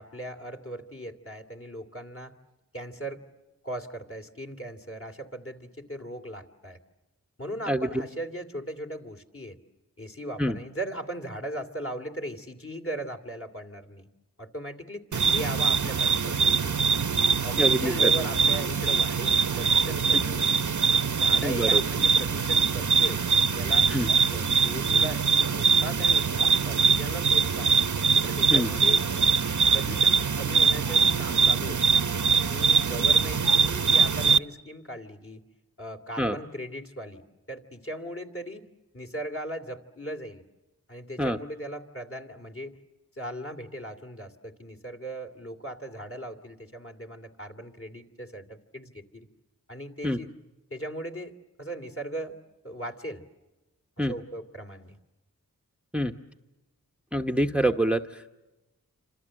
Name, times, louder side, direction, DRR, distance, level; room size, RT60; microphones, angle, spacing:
voice 1, 0.0-2.3 2.7-3.2 3.6-6.8 7.4-9.6 10.0-14.1 14.4-16.8 17.4-20.6 21.1-23.2 23.5-26.3 26.6-27.7 28.2-29.0 29.7-32.0 32.4-35.4 35.8-37.2 37.5-38.7 38.9-40.4 40.9-42.8 43.1-49.3 49.7-50.3 50.7-51.3 51.6-52.4 52.6-53.2 54.0-55.0, right 1 dB, 40° left, 8 dB, 2.8 m, -38 dB
sound 1, 15.1-34.4, right 5 dB, 55° right, 0.9 m, -23 dB
voice 2, 17.6-18.1 21.4-21.8 23.9-24.1 28.5-28.7 36.2-36.4 41.2-41.4 50.0-50.2 54.0-54.1 55.9-56.1 57.1-58.3, right 1 dB, 5° right, 6 dB, 0.9 m, -26 dB
28.0 x 26.5 x 7.7 m, 1.0 s
wide cardioid pair, 50°, 35 cm